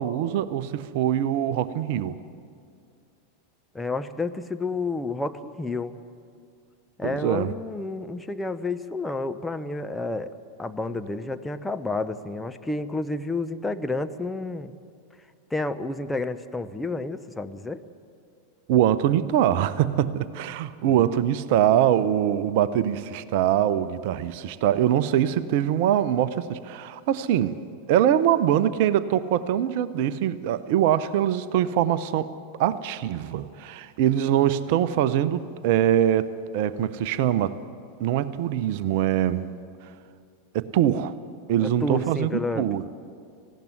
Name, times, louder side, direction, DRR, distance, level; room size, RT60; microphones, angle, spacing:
voice 1, 0.0-2.2 7.0-7.5 18.7-27.6 27.9-32.3 32.6-37.6 38.0-39.5 40.5-41.2 41.5-42.9, right 11 dB, 50° right, 15 dB, 0.7 m, -23 dB
voice 2, 3.7-6.0 7.0-10.3 10.6-14.7 15.5-17.8 20.9-21.0 41.6-42.7, left 2 dB, 10° left, 9 dB, 0.9 m, -30 dB
19.0 x 16.0 x 9.6 m, 2.3 s
figure-of-eight pair, 90°, 0 cm